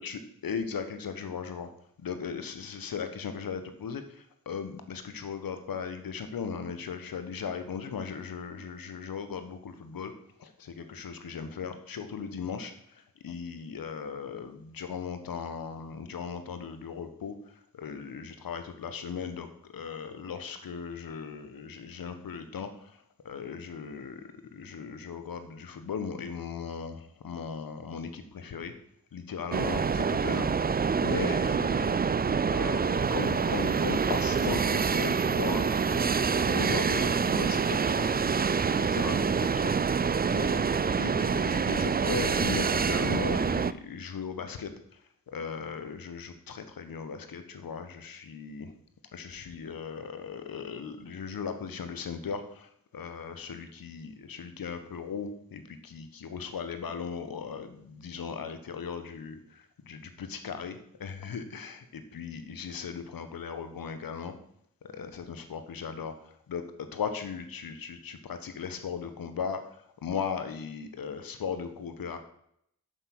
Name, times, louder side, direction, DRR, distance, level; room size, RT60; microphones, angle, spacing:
voice 1, 0.0-1.7 2.0-10.1 10.4-19.5 19.7-24.2 24.5-28.7 29.1-30.5 31.0-32.0 32.5-38.1 38.7-39.7 40.3-40.6 41.0-44.7 45.3-48.7 49.1-64.3 64.8-66.6 66.9-69.6 70.0-72.2, left 6 dB, 75° left, 9 dB, 1.3 m, -37 dB
sound 1, 29.5-43.7, right 5 dB, 25° right, 0.5 m, -26 dB
7.7 x 7.0 x 6.2 m, 0.73 s
cardioid pair, 50°, 35 cm